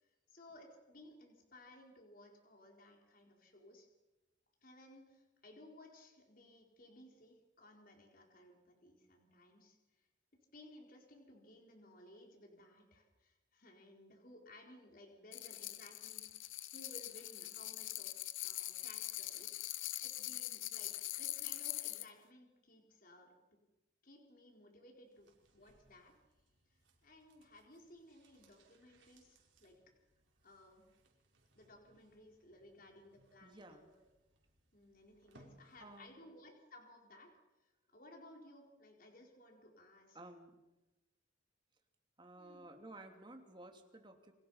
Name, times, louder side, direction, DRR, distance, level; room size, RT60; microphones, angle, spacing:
voice 1, 0.0-3.9 4.6-10.1 10.5-23.4 24.0-26.1 27.0-29.8 30.4-30.8 31.5-34.0 34.7-40.2 42.4-42.7, left 1 dB, 45° left, 1 dB, 4.5 m, -59 dB
sound 1, 15.3-22.1, left 15 dB, 90° left, 0.9 m, -43 dB
sound 2, 25.0-36.2 36.5-36.6, right 2 dB, 75° right, 5.0 m, -70 dB
voice 2, 33.4-33.9 35.8-36.2 40.1-40.5 42.2-44.3, right 2 dB, 25° right, 4 dB, 3.0 m, -54 dB
29.5 x 26.0 x 5.8 m, 1.0 s
head